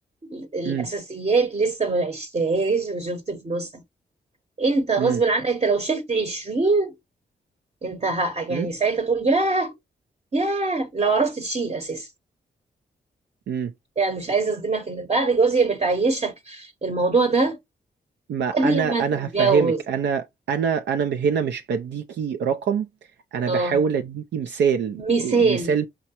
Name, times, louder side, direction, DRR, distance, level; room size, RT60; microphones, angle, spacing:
voice 1, 0.3-3.8 4.6-7.0 7.8-9.8 10.3-12.1 14.0-17.6 18.5-19.8 23.5-23.8 24.9-25.7, right 3 dB, 35° right, 0.9 m, -23 dB
voice 2, 18.3-22.9 23.3-25.9, right 6 dB, 75° right, 0.5 m, -25 dB
4.7 x 3.1 x 2.8 m
cardioid pair, 55°, 18 cm